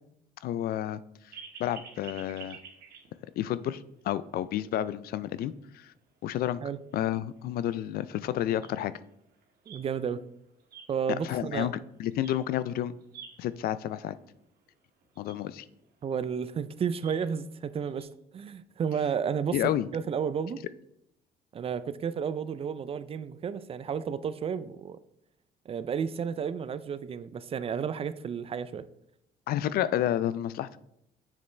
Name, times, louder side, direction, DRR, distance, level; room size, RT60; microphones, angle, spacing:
voice 1, 0.4-1.0 1.6-2.6 3.4-5.9 6.2-6.6 6.9-8.9 11.1-11.7 12.0-12.9 13.4-14.2 15.2-15.7 19.5-19.9 29.5-30.8, left 12 dB, 65° left, 16 dB, 0.4 m, -30 dB
sound 1, 1.3-3.5 3.9-4.0 4.5-4.6 5.9-6.0 6.4-6.5 6.9-7.0 7.3-10.2 10.6-11.8 12.1-12.6 12.9-13.8 14.3-14.4 14.7-14.8 15.0-18.0, right 6 dB, 65° right, 1.7 m, -50 dB
voice 2, 9.7-10.2 10.9-11.7 16.0-18.1 18.3-19.6 19.9-20.6 21.5-25.0 25.7-28.9, right 7 dB, 35° right, 15 dB, 0.4 m, -32 dB
6.9 x 6.6 x 3.3 m, 0.76 s
cardioid pair, 110°, 17 cm